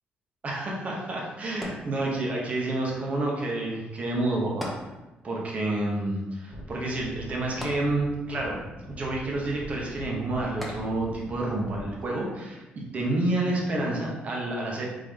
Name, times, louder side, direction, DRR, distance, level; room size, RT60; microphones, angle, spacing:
voice 1, 0.4-4.7 5.2-8.6 8.9-14.9, right 2 dB, 40° right, -2 dB, 1.2 m, -29 dB
sound 1, 1.6-2.5 4.6-5.5 5.8-5.9 7.6-8.4 10.6-11.3 12.0-12.1, equal, ahead, 0.9 m, -39 dB
sound 2, 6.5-12.0, left 1 dB, 25° left, 1.0 m, -43 dB
3.8 x 3.8 x 3.3 m, 1.1 s
cardioid pair, 110°, 4 cm